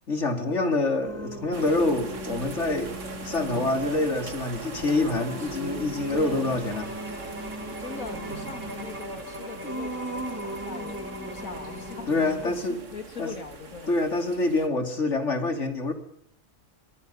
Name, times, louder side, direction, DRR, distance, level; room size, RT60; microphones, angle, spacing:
voice 1, 0.1-6.9 12.1-12.8 13.2-13.3 13.9-15.9, left 2 dB, 60° left, 7 dB, 3.2 m, -26 dB
Singing, 1.0-12.7, equal, 10° right, 2.5 m, -39 dB
sound 1, 1.5-14.7, right 4 dB, 65° right, 2.3 m, -41 dB
voice 2, 6.1-6.6 7.8-13.9 14.4-14.7, left 4 dB, 85° left, 7 dB, 3.1 m, -41 dB
Bowed string instrument, 6.7-12.1, right 1 dB, 35° right, 2.4 m, -42 dB
25.0 x 21.5 x 5.7 m, 0.71 s
omnidirectional pair, 1.4 m